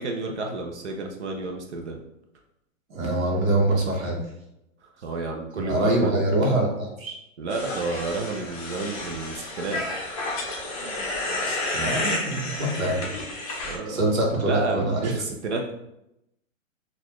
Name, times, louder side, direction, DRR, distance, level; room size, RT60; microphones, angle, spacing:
voice 1, 0.0-2.0 5.0-6.2 7.4-9.8 13.6-14.0 14.5-15.8, right 3 dB, 60° right, 2 dB, 0.6 m, -31 dB
voice 2, 2.9-4.3 5.5-7.2 11.5-13.1 13.9-15.1, right 1 dB, 80° right, -1 dB, 1.2 m, -24 dB
sound 1, 7.5-13.8, left 2 dB, 25° left, 0.5 m, -31 dB
3.9 x 2.5 x 2.9 m, 0.83 s
hypercardioid pair, 170°, 40 cm